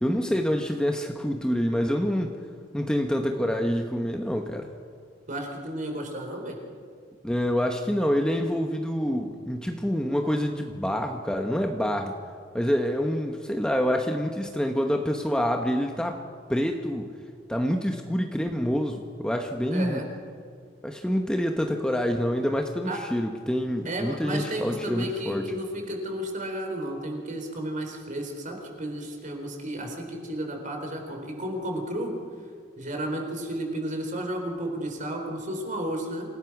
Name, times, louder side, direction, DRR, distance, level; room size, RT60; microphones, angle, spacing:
voice 1, 0.0-2.4 2.7-4.7 7.2-12.1 12.5-16.2 16.5-17.1 17.5-20.0 20.8-25.5, equal, 5° left, 3 dB, 1.1 m, -27 dB
voice 2, 5.3-6.6 19.7-20.1 22.9-23.0 23.8-32.1 32.8-36.3, right 1 dB, 45° right, 3 dB, 4.0 m, -32 dB
27.5 x 17.5 x 6.0 m, 2.1 s
head